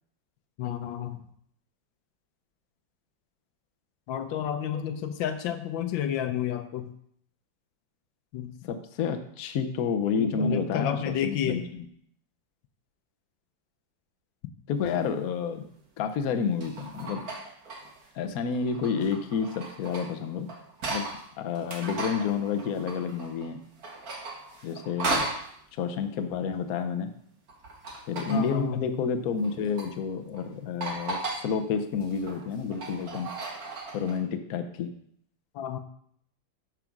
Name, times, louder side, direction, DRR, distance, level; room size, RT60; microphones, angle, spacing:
voice 1, 0.6-1.2 4.1-6.9 8.3-8.6 10.2-11.7 28.3-28.9 35.5-35.8, left 9 dB, 85° left, 9 dB, 1.5 m, -30 dB
voice 2, 8.7-11.6 14.7-15.6 16.0-17.2 18.1-20.5 20.9-21.0 21.4-23.6 24.6-25.2 25.8-27.1 28.1-33.3 33.9-34.9, left 6 dB, 60° left, 8 dB, 1.1 m, -29 dB
sound 1, 14.9-15.0 16.3-18.1 18.5-21.2 21.5-23.5 23.8-25.5 27.5-28.5 29.4-29.9 30.3-30.4 30.8-31.5 31.9-34.2, right 2 dB, 55° right, 1.8 m, -36 dB
9.0 x 4.8 x 6.0 m, 0.67 s
omnidirectional pair, 2.0 m